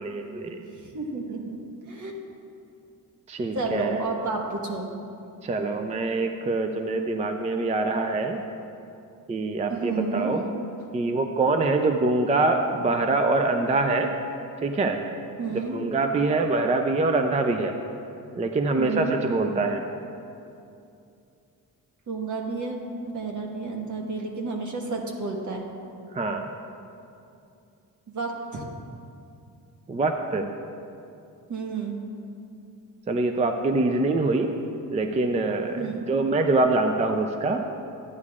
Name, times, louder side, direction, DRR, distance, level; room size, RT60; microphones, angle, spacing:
voice 1, 0.0-0.7 3.3-4.0 5.4-8.4 9.3-10.4 10.9-14.1 14.6-15.0 15.7-17.7 18.4-19.8 26.1-26.5 29.9-30.5 33.1-34.6 34.9-37.6, right 3 dB, 20° right, 5 dB, 0.4 m, -24 dB
voice 2, 0.8-1.6 1.9-2.2 3.5-4.9 9.7-10.4 15.4-15.8 18.8-19.2 22.1-22.8 23.0-25.7 28.1-28.6 31.5-32.0 35.8-36.0, right 4 dB, 55° right, 0 dB, 1.3 m, -31 dB
12.5 x 9.6 x 2.4 m, 2.6 s
cardioid pair, 120°, 35 cm